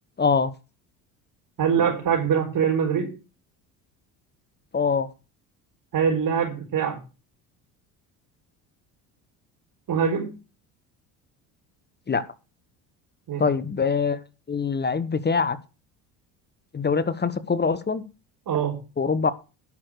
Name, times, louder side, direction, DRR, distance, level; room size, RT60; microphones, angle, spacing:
voice 1, 0.2-0.5 4.7-5.1 12.1-12.2 13.4-14.2 14.5-15.6 16.7-18.0 19.0-19.3, left 5 dB, 20° left, 15 dB, 1.0 m, -23 dB
voice 2, 1.6-3.1 5.9-7.0 9.9-10.3 13.3-13.4 18.5-18.8, right 7 dB, 50° right, -2 dB, 4.7 m, -23 dB
11.0 x 6.5 x 6.4 m, 0.31 s
hypercardioid pair, 70°, 45 cm